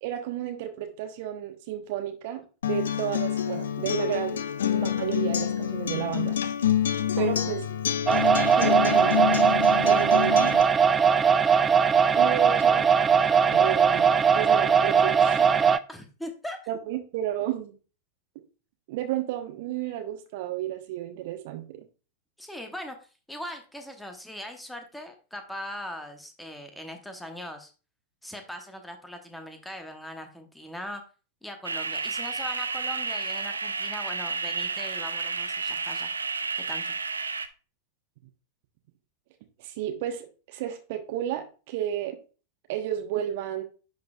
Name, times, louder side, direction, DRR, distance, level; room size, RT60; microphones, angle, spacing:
voice 1, 0.0-2.4 2.7-4.4 4.7-6.4 7.2-7.6 8.5-9.4 9.8-10.6 12.2-12.8 13.5-15.5 16.7-17.8 18.9-21.8 39.6-42.2 42.7-43.6, right 12 dB, 50° right, 6 dB, 1.1 m, -32 dB
Acoustic guitar, 2.6-10.6, left 9 dB, 65° left, 0.5 m, -27 dB
voice 2, 7.2-7.6 15.9-16.6 22.4-23.0 23.3-27.7 28.2-31.0 31.4-36.1 36.5-36.9, left 1 dB, 5° left, 5 dB, 1.0 m, -40 dB
sound 1, 8.1-15.8, right 6 dB, 20° right, 0.4 m, -20 dB
sound 2, 31.6-37.5, right 4 dB, 75° right, 0.5 m, -31 dB
10.5 x 3.9 x 2.4 m, 0.35 s
figure-of-eight pair, 90°, 0 cm